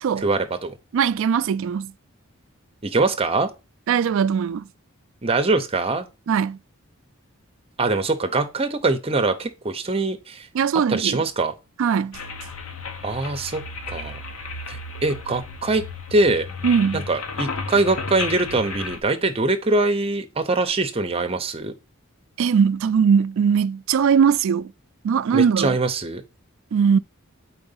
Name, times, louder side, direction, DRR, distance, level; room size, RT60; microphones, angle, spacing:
voice 1, 0.2-0.8 2.8-3.5 5.2-6.1 7.8-10.5 10.9-11.5 13.0-14.2 14.7-15.8 16.1-16.5 16.9-21.7 25.3-26.2, right 3 dB, 30° right, 0.7 m, -23 dB
voice 2, 0.9-1.9 3.9-4.6 6.3-6.6 10.5-11.2 11.8-12.2 16.6-17.0 22.4-24.7 25.0-25.8 26.7-27.0, right 7 dB, 65° right, 0.3 m, -20 dB
sound 1, 12.1-19.0, left 4 dB, 80° left, 0.8 m, -33 dB
4.4 x 3.9 x 5.5 m
head